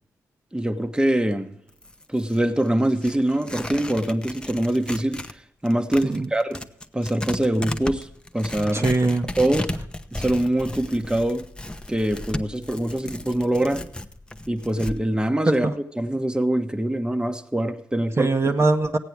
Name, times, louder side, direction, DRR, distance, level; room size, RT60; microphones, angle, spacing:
voice 1, 0.5-1.5 2.1-5.2 5.6-6.6 6.9-8.1 8.3-8.9 9.4-9.7 10.1-11.5 11.9-13.9 14.5-15.7 16.0-18.3, right 1 dB, 10° right, 7 dB, 1.1 m, -24 dB
Tearing, 1.7-5.4 5.7-15.0, left 1 dB, 10° left, 0.8 m, -34 dB
voice 2, 8.7-9.3 15.5-15.7 18.2-19.0, right 3 dB, 35° right, 4 dB, 1.0 m, -21 dB
15.0 x 8.9 x 4.7 m, 0.80 s
hypercardioid pair, 40°, 8 cm